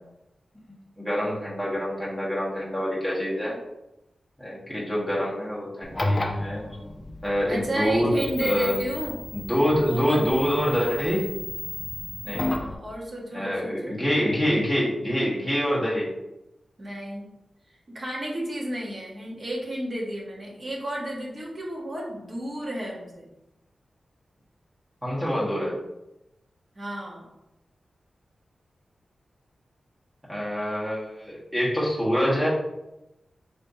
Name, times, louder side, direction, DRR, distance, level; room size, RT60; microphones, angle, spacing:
voice 1, 1.0-3.5 4.4-6.6 7.2-8.1 8.4-8.7 9.3-11.3 12.2-12.4 13.3-16.1 25.0-25.7 30.3-32.5, equal, 5° right, -7 dB, 1.3 m, -26 dB
sound 1, 5.8-12.7, left 2 dB, 25° left, 0.4 m, -32 dB
voice 2, 7.5-9.2 9.9-10.2 12.3-14.0 16.8-17.3 17.9-23.3 26.7-27.3, right 1 dB, 30° right, -3 dB, 1.0 m, -32 dB
5.1 x 3.2 x 2.6 m, 0.92 s
wide cardioid pair, 165°, 0 cm